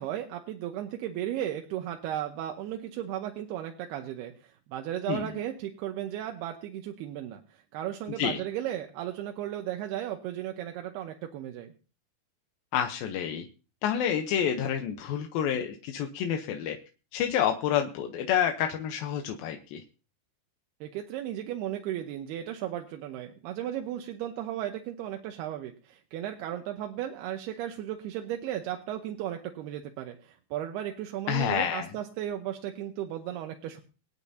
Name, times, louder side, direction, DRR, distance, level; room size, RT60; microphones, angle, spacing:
voice 1, 0.0-7.4 7.7-11.7 20.8-33.8, right 11 dB, 80° right, 4 dB, 2.8 m, -35 dB
voice 2, 12.7-13.5 13.8-16.8 17.1-19.8 31.3-31.9, left 9 dB, 75° left, 5 dB, 2.4 m, -28 dB
25.0 x 9.0 x 2.7 m, 0.35 s
omnidirectional pair, 4.8 m